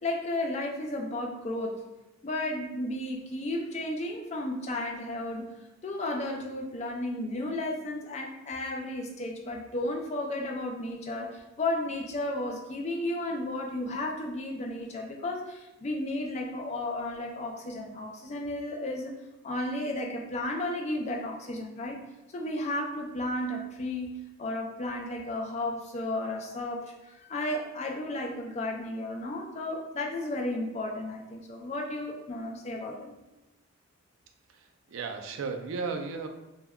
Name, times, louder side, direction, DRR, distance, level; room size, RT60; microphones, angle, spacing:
voice 1, 0.0-1.8 2.2-5.5 5.8-19.1 19.4-22.0 22.3-33.1, left 1 dB, 30° left, 1 dB, 0.3 m, -33 dB
voice 2, 34.5-36.3, right 4 dB, 65° right, 5 dB, 0.3 m, -35 dB
2.2 x 2.1 x 3.4 m, 0.99 s
head